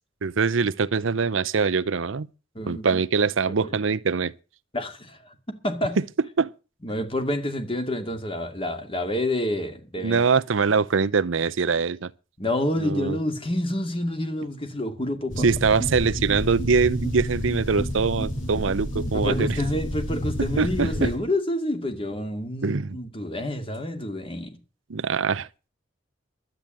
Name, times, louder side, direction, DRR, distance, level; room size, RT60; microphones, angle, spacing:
voice 1, 0.2-2.3 2.7-4.3 6.4-6.5 10.0-12.1 12.8-13.2 15.4-19.6 20.4-21.1 22.6-23.0 24.9-25.5, right 5 dB, 75° right, 0.6 m, -23 dB
voice 2, 2.5-3.0 3.5-3.8 4.7-6.0 6.8-10.2 12.4-15.5 19.0-24.6, left 1 dB, 25° left, 2.2 m, -28 dB
sound 1, 15.3-21.2, equal, 75° left, 3.8 m, -30 dB
12.0 x 8.9 x 7.7 m
head